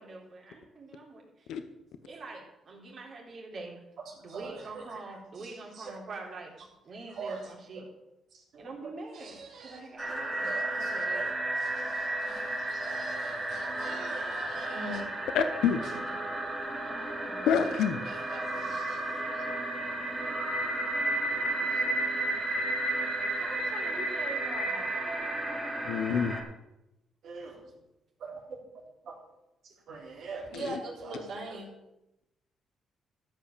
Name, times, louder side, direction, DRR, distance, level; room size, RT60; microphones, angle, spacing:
voice 1, 0.0-1.5 2.0-3.8 4.2-6.5 6.8-7.8 8.6-11.2 16.8-17.7 18.5-19.2 23.3-24.8, right 3 dB, 50° right, -1 dB, 3.8 m, -45 dB
voice 2, 4.0-6.0 7.1-7.9 8.3-15.1 15.8-16.0 17.6-17.7 18.0-19.0 19.3-19.4 21.7-21.8 24.7-24.8 25.9-26.0 27.2-27.7 28.2-28.6 29.0-29.2 29.6-31.7, right 3 dB, 65° right, -1 dB, 3.6 m, -43 dB
sound 1, 10.0-26.4, right 2 dB, 20° right, 3.2 m, -32 dB
voice 3, 15.3-15.8 17.5-18.0 25.8-26.4 30.5-30.8, left 7 dB, 80° left, 9 dB, 0.9 m, -27 dB
13.5 x 5.7 x 6.8 m, 0.92 s
cardioid pair, 90°, 0 cm